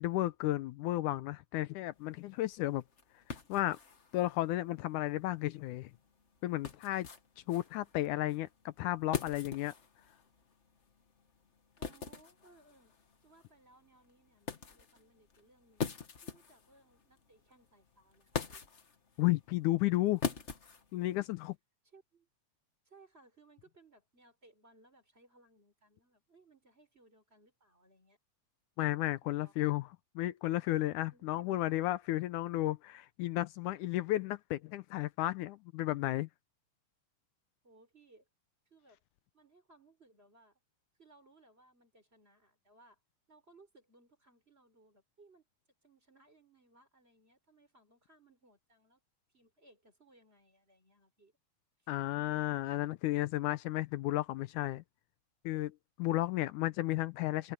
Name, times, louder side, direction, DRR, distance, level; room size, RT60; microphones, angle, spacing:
voice 1, 0.0-2.8 3.5-3.8 4.1-5.9 6.4-7.1 7.5-9.7 19.2-20.2 20.9-21.6 28.8-29.9 30.2-36.3 51.9-54.8 55.5-55.7 56.0-57.5, left 16 dB, 80° left, 2.1 m, -33 dB
sound 1, 1.9-21.5, left 6 dB, 60° left, 0.7 m, -44 dB
voice 2, 11.8-12.9 13.2-18.6 21.8-22.3 22.8-28.2 29.2-29.7 31.1-31.6 37.6-38.3 38.7-39.0 39.3-40.6 41.0-43.0 43.3-45.5 45.8-49.0 49.3-51.3 51.8-51.9 52.1-52.6 56.1-56.4, right 2 dB, 20° right, 4.2 m, -64 dB
open air
omnidirectional pair, 3.6 m